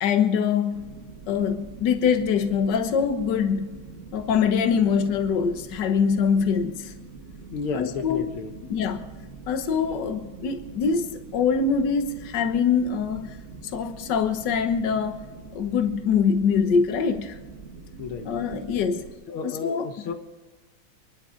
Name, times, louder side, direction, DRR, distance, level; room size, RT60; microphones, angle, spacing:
voice 1, 0.0-0.9 1.3-3.8 4.1-6.9 7.7-8.3 8.7-9.1 9.5-13.4 13.7-15.2 15.5-17.4 18.3-19.0 19.4-19.9, left 6 dB, 55° left, 7 dB, 1.7 m, -24 dB
sound 1, 0.7-19.1, right 4 dB, 35° right, 1.5 m, -44 dB
voice 2, 7.5-8.5 18.0-18.3 19.3-20.1, left 5 dB, 75° left, 7 dB, 1.8 m, -32 dB
28.0 x 11.5 x 3.8 m, 1.3 s
omnidirectional pair, 2.4 m